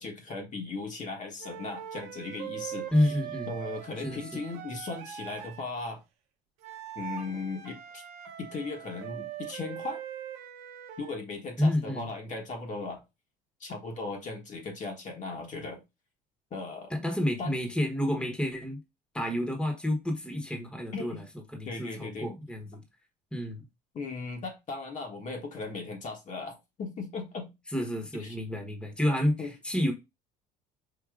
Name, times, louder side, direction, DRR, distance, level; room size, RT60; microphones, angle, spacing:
voice 1, 0.0-3.1 3.5-6.0 6.9-8.0 8.4-10.0 11.0-13.0 13.6-15.8 16.5-16.9 17.4-17.5 20.9-21.2 21.7-22.3 23.9-27.5 28.2-28.4 29.4-29.5, left 3 dB, 40° left, 1.1 m, -37 dB
sound 1, 1.4-5.7 6.6-11.2, right 10 dB, 90° right, 0.7 m, -41 dB
voice 2, 2.9-3.6 4.0-4.2 11.6-12.1 16.9-18.8 19.1-21.2 21.5-22.8 23.3-23.6 27.7-29.9, left 1 dB, 5° left, 1.0 m, -29 dB
4.8 x 2.6 x 2.4 m
supercardioid pair, 90°, 19 cm